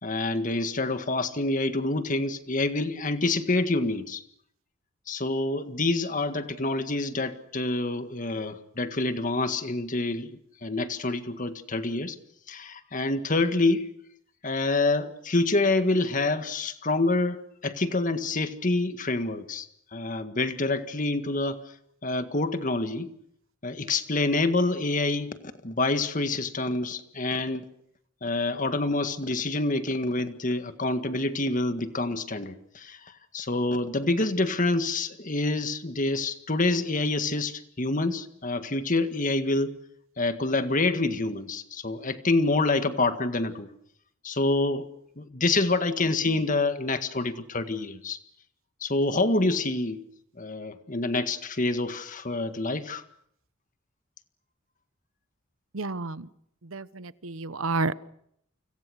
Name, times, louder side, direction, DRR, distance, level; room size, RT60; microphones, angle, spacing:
voice 1, 0.0-4.2 5.1-12.2 12.5-13.9 14.4-21.7 22.0-23.1 23.6-27.7 28.2-39.7 40.2-43.7 44.2-44.9 45.2-48.2 48.8-50.0 50.4-53.0, left 2 dB, 40° left, 9 dB, 1.8 m, -27 dB
voice 2, 55.7-56.3 56.7-57.9, right 3 dB, 80° right, 16 dB, 1.0 m, -30 dB
29.5 x 25.5 x 6.4 m, 0.71 s
head